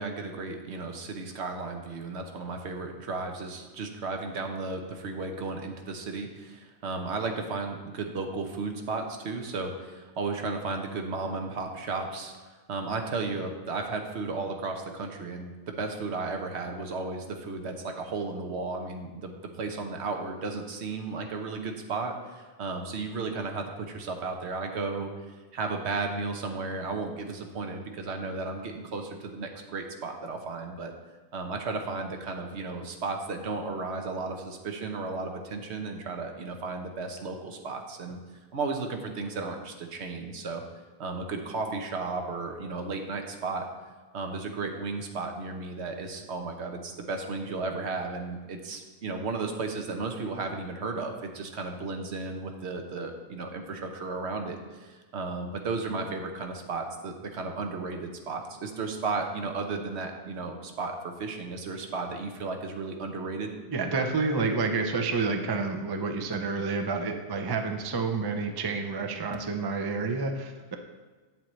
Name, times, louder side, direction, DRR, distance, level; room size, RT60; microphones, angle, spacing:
voice 1, 0.0-30.9 31.3-38.2 38.5-40.6 41.0-43.7 44.1-63.5, right 3 dB, 70° right, 4 dB, 1.1 m, -34 dB
voice 2, 63.7-70.8, right 4 dB, 30° right, 5 dB, 0.4 m, -29 dB
8.6 x 7.4 x 3.1 m, 1.3 s
omnidirectional pair, 1.2 m